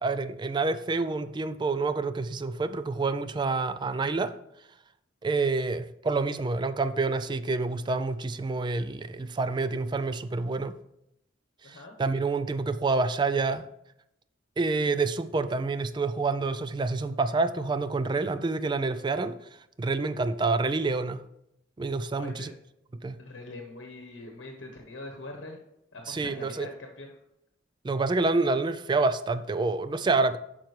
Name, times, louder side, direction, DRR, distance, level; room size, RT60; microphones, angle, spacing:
voice 1, 0.0-4.3 5.2-10.8 11.6-13.7 14.6-19.4 19.8-21.2 21.8-22.5 23.0-23.2 26.1-26.7 27.8-30.4, right 3 dB, 25° right, 0.3 m, -28 dB
voice 2, 11.6-11.9 22.2-22.5 23.2-25.6 25.9-27.1, left 2 dB, 75° left, 1.0 m, -43 dB
8.9 x 5.9 x 3.2 m
head